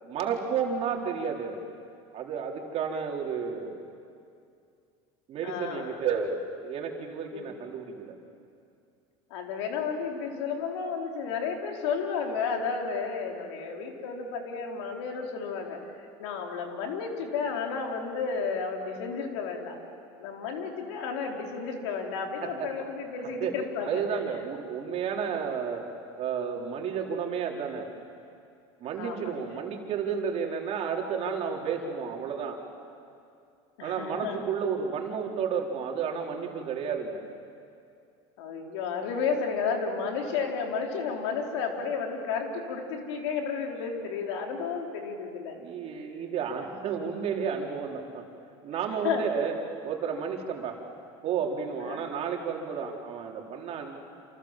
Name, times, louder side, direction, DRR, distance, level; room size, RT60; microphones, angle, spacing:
voice 1, 0.0-1.6 2.1-3.9 5.3-8.1 22.4-22.7 23.4-23.5 23.9-25.8 26.2-27.9 28.8-32.6 33.8-37.2 45.6-48.2 48.6-49.6 49.8-50.8 51.2-54.0, right 6 dB, 45° right, 1 dB, 3.9 m, -32 dB
voice 2, 5.4-6.2 7.3-7.5 9.3-19.8 20.2-24.0 29.0-29.5 33.8-34.4 38.4-45.6 49.0-49.3 51.8-52.0, left 5 dB, 85° left, 2 dB, 4.0 m, -32 dB
28.5 x 28.0 x 7.5 m, 2.5 s
supercardioid pair, 120°, 14 cm